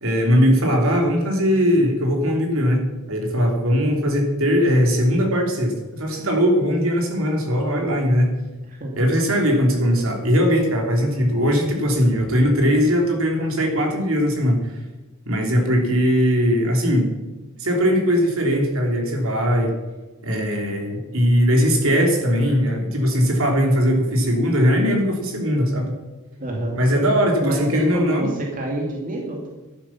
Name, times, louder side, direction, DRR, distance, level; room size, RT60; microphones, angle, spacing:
voice 1, 0.0-8.3 9.0-14.6 15.3-17.1 17.6-19.7 20.2-25.9 26.7-28.3, equal, 65° right, 2 dB, 3.1 m, -19 dB
voice 2, 26.4-26.8 27.4-29.5, right 1 dB, 40° right, -1 dB, 2.2 m, -27 dB
12.0 x 11.5 x 5.8 m, 1.1 s
head